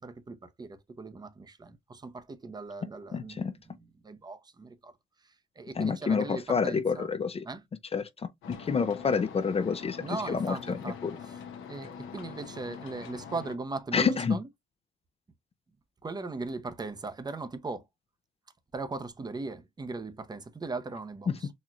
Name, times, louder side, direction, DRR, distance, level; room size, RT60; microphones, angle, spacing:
voice 1, 0.0-4.9 5.2-7.1 7.4-7.6 10.0-11.4 11.7-14.5 16.0-17.8 18.7-21.5, right 3 dB, 20° right, 0.7 m, -39 dB
voice 2, 3.1-3.5 5.8-7.4 7.9-10.8 11.0-11.2 13.9-14.4 21.3-21.4, left 5 dB, 30° left, 0.4 m, -28 dB
sound 1, 8.4-13.6, left 7 dB, 90° left, 0.9 m, -44 dB
4.2 x 2.8 x 2.4 m
cardioid pair, 90°, 20 cm